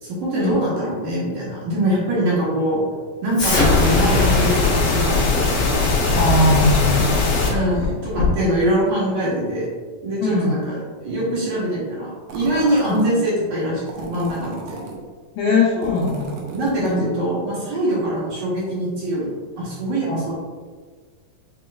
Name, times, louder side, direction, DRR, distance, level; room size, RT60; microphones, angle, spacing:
voice 1, 0.0-2.8 3.2-5.2 7.5-9.7 10.0-14.8 16.5-19.3 19.6-20.4, right 1 dB, 65° right, -7 dB, 2.3 m, -23 dB
Explosion, 3.3-8.5, left 2 dB, 45° left, 1.5 m, -23 dB
sound 1, 3.5-7.5, left 4 dB, 65° left, 2.1 m, -20 dB
voice 2, 6.1-7.1 10.2-10.6 12.8-13.0 15.4-16.3 16.8-17.1 17.9-18.1 20.0-20.2, left 2 dB, 90° left, -5 dB, 1.7 m, -20 dB
sound 2, 12.3-13.2 13.9-15.0 15.8-17.0, right 3 dB, 80° right, 2.4 m, -35 dB
6.7 x 2.9 x 2.4 m, 1.5 s
omnidirectional pair, 4.2 m